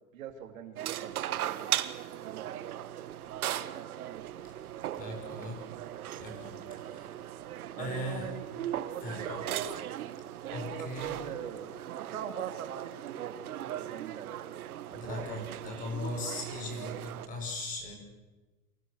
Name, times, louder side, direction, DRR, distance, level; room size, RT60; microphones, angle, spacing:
voice 1, 0.0-1.8 2.2-3.0 6.8-7.2 7.8-8.5 8.9-9.6 10.4-14.5 14.9-15.3, right 9 dB, 65° right, 6 dB, 3.3 m, -43 dB
sound 1, 0.8-17.3, right 12 dB, 80° right, 1.7 m, -38 dB
voice 2, 4.9-5.7 6.2-7.1 7.7-8.3 9.0-9.5 10.5-11.2 14.9-17.9, left 1 dB, 20° left, 4 dB, 5.6 m, -39 dB
28.5 x 26.0 x 6.6 m, 1.2 s
supercardioid pair, 175°, 43 cm